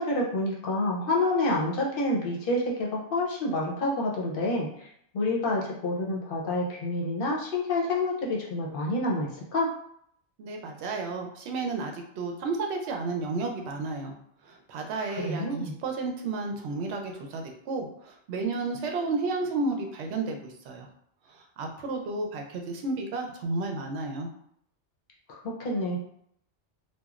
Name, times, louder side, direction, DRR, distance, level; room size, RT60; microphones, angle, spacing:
voice 1, 0.0-4.9 5.1-9.7 15.2-15.8 25.3-26.0, left 2 dB, 55° left, -3 dB, 0.8 m, -28 dB
voice 2, 10.4-14.1 14.5-20.9 21.6-24.3, right 3 dB, 75° right, 3 dB, 0.8 m, -32 dB
2.9 x 2.2 x 2.4 m, 0.68 s
omnidirectional pair, 1.2 m